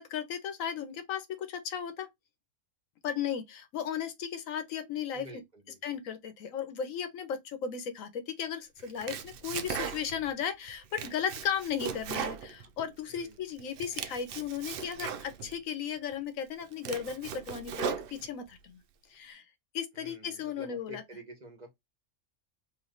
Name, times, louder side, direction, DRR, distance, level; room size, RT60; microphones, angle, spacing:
voice 1, 0.0-2.1 3.0-5.3 5.8-18.8 19.1-19.4 19.7-21.0, left 8 dB, 90° left, 1.2 m, -35 dB
voice 2, 5.1-6.0 13.1-13.4 19.9-21.7, right 1 dB, 35° right, 1.3 m, -49 dB
Domestic sounds home sounds, 8.8-10.3 10.7-13.2 13.6-15.6 16.1-16.2 16.6-18.6, right 7 dB, 60° right, 0.6 m, -38 dB
3.2 x 3.1 x 3.8 m
omnidirectional pair, 1.3 m